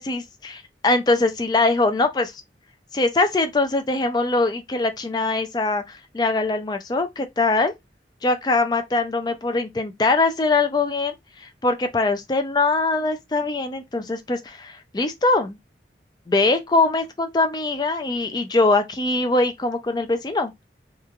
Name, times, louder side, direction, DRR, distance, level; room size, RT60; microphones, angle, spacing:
voice 1, 0.0-2.3 2.9-5.8 6.1-7.7 8.2-11.1 11.4-15.6 16.3-20.5, left 3 dB, 25° left, 0.3 m, -22 dB
3.0 x 2.3 x 2.3 m
head